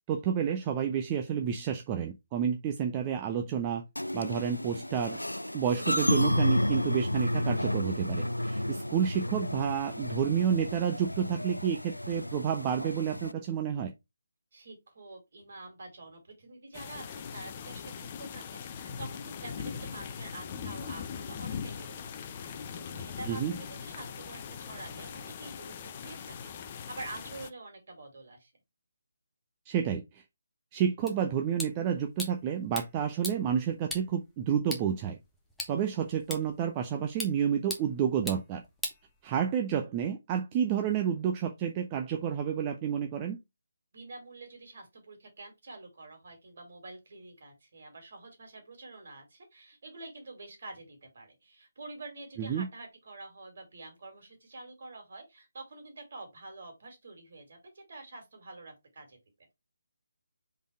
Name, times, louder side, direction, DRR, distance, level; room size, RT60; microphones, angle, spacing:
voice 1, 0.1-3.8 4.1-5.2 5.5-13.9 23.3-23.5 29.7-30.2 30.7-35.2 35.7-38.6 39.2-43.4 52.4-52.7, right 8 dB, 20° right, 0.6 m, -30 dB
sound 1, 4.0-13.3, left 1 dB, 85° left, 0.4 m, -31 dB
voice 2, 14.5-28.5 43.9-59.2, right 2 dB, 45° right, 2.9 m, -47 dB
sound 2, 16.7-27.5, left 7 dB, 30° left, 0.6 m, -41 dB
sound 3, 31.1-39.7, left 1 dB, ahead, 1.1 m, -43 dB
5.1 x 4.1 x 4.5 m
figure-of-eight pair, 145°, 0 cm